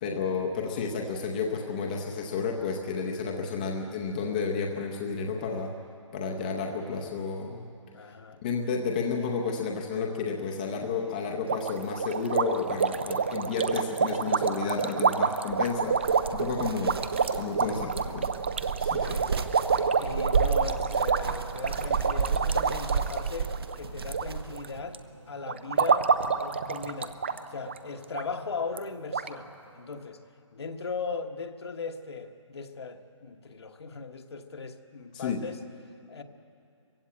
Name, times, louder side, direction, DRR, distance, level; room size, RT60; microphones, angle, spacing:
voice 1, 0.0-5.7 6.1-7.7 8.4-17.0 17.4-18.3 18.8-19.2 35.1-35.4, left 5 dB, 15° left, 1 dB, 0.7 m, -31 dB
voice 2, 7.9-8.4 18.9-19.3 19.7-25.0 25.3-26.1 26.4-27.2 27.5-30.2 30.5-35.6 36.1-36.2, left 4 dB, 55° left, 6 dB, 1.3 m, -38 dB
sound 1, 11.5-24.2 24.5-24.9 25.5-27.4 27.7-27.8 28.1-28.2 28.8-28.9 29.1-29.3, right 5 dB, 20° right, 0.4 m, -27 dB
sound 2, 15.5-24.8, right 5 dB, 50° right, 1.0 m, -32 dB
20.5 x 16.0 x 8.6 m, 2.5 s
hypercardioid pair, 170°, 16 cm